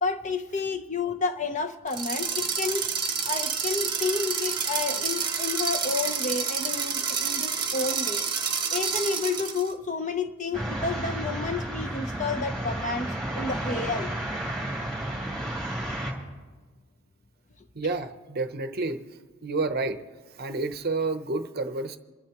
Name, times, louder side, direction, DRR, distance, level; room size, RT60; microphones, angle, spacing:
voice 1, 0.0-2.9 3.2-8.3 8.7-14.1, left 4 dB, 35° left, 8 dB, 0.7 m, -30 dB
sound 1, 1.9-9.7, right 6 dB, 20° right, 1.2 m, -29 dB
sound 2, 10.5-16.1, right 1 dB, ahead, 2.6 m, -32 dB
voice 2, 17.7-19.0 19.4-20.0 20.3-22.0, right 3 dB, 45° right, 9 dB, 0.7 m, -29 dB
27.5 x 11.5 x 3.0 m, 1.4 s
head